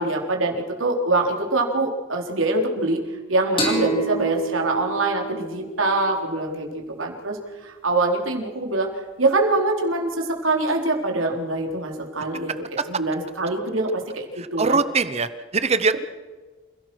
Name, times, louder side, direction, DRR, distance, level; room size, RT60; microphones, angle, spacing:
voice 1, 0.0-3.0 3.3-8.9 9.2-14.2 14.5-14.8, right 2 dB, 80° right, 1 dB, 3.9 m, -24 dB
sound 1, 3.6-6.9, right 2 dB, 25° left, 5.2 m, -29 dB
voice 2, 14.4-15.9, right 4 dB, 30° right, 13 dB, 0.8 m, -22 dB
28.0 x 17.0 x 6.3 m, 1.3 s
head